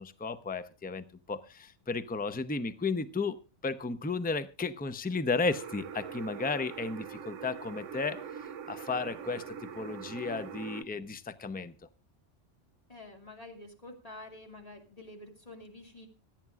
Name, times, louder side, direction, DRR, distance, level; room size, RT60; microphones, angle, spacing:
voice 1, 0.0-3.4 3.6-8.2 8.7-11.7, left 4 dB, 10° left, 12 dB, 0.5 m, -34 dB
sound 1, 5.5-10.8, right 7 dB, 80° right, 1.1 m, -43 dB
voice 2, 12.9-16.1, left 2 dB, 30° left, 3 dB, 2.7 m, -48 dB
25.5 x 9.3 x 2.4 m, 0.31 s
omnidirectional pair, 1.2 m